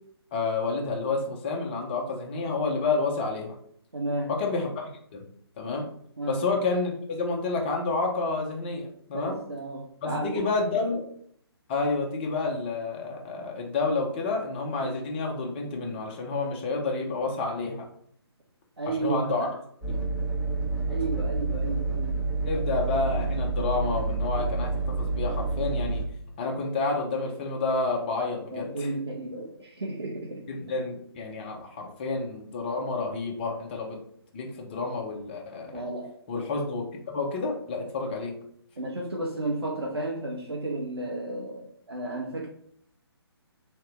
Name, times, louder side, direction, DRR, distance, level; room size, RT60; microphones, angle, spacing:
voice 1, 0.3-3.5 4.3-5.2 5.6-5.9 6.3-9.4 10.0-11.0 11.7-17.9 19.0-19.5 19.9-20.0 22.4-26.0 26.4-28.9 30.5-34.0 34.3-35.8 36.3-38.4, left 3 dB, 25° left, 1 dB, 0.6 m, -29 dB
voice 2, 3.9-4.3 6.2-6.4 9.1-10.5 10.7-10.8 18.8-19.5 20.9-22.2 22.6-22.7 28.5-30.4 35.7-36.1 38.8-42.5, right 2 dB, 70° right, -2 dB, 0.8 m, -33 dB
sound 1, 19.8-26.0, right 3 dB, 10° right, 0.9 m, -28 dB
3.5 x 2.8 x 3.1 m, 0.64 s
figure-of-eight pair, 140°, 14 cm